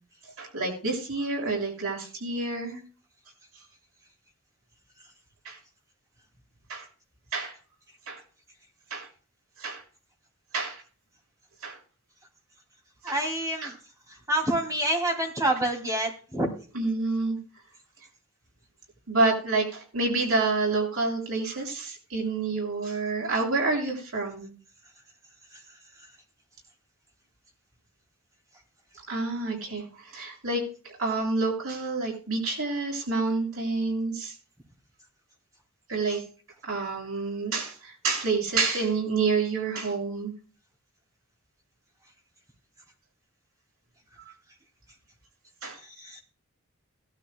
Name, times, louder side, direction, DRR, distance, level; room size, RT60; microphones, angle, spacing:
voice 1, 0.4-2.8 5.4-5.6 6.7-6.9 7.3-7.5 8.1-8.2 8.9-9.1 9.6-9.8 10.5-10.8 11.6-11.8 13.1-13.2 13.6-13.7 16.7-17.4 19.1-24.5 29.1-30.6 31.0-34.3 35.9-36.2 36.6-40.3 45.6-45.8, right 3 dB, 85° right, -2 dB, 6.5 m, -28 dB
voice 2, 13.0-13.8 14.1-16.5 45.8-46.2, right 1 dB, 15° right, 3 dB, 2.7 m, -27 dB
18.5 x 12.0 x 2.3 m, 0.38 s
head